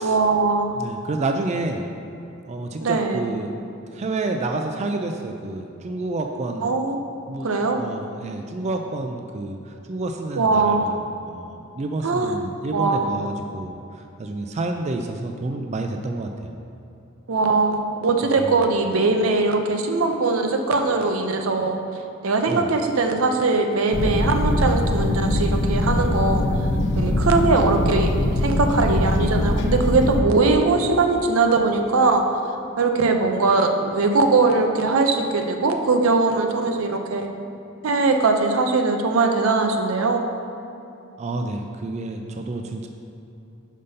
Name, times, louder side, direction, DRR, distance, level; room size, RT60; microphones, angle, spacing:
voice 1, 0.0-0.8 2.8-3.3 6.6-7.0 7.4-7.8 10.4-10.9 12.0-12.4 12.7-13.2 17.3-21.8 22.2-26.5 27.0-32.2 32.8-37.3 37.8-40.3, right 3 dB, 80° right, 5 dB, 0.6 m, -21 dB
voice 2, 0.8-1.8 2.5-3.5 3.9-6.7 7.3-16.5 18.4-18.6 22.5-22.7 41.2-42.9, right 2 dB, 35° right, 4 dB, 0.3 m, -29 dB
sound 1, 23.9-30.2, left 1 dB, 60° left, 0.5 m, -22 dB
5.5 x 5.2 x 5.4 m, 2.8 s
head